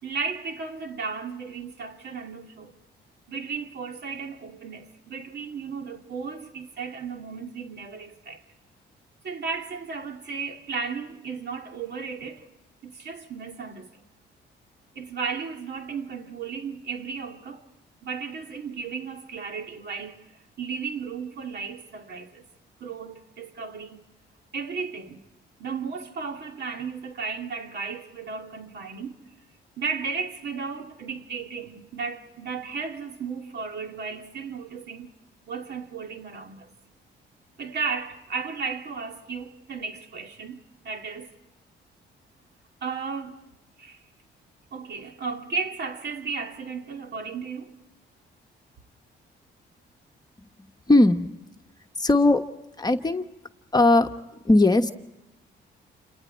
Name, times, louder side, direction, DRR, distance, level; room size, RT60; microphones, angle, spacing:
voice 1, 0.0-2.8 3.3-8.4 9.2-12.4 12.8-13.9 15.0-17.6 18.0-22.4 22.8-24.0 24.5-25.2 25.6-29.2 29.8-35.1 35.5-36.7 37.6-41.3 42.8-43.4 43.8-44.0 44.7-47.7, right 5 dB, 60° right, 2.5 m, -34 dB
voice 2, 50.9-51.3 52.0-52.4 52.8-53.2 53.7-54.1 54.4-54.9, left 2 dB, 20° left, 1.2 m, -18 dB
29.0 x 27.0 x 4.4 m
cardioid pair, 90°, 20 cm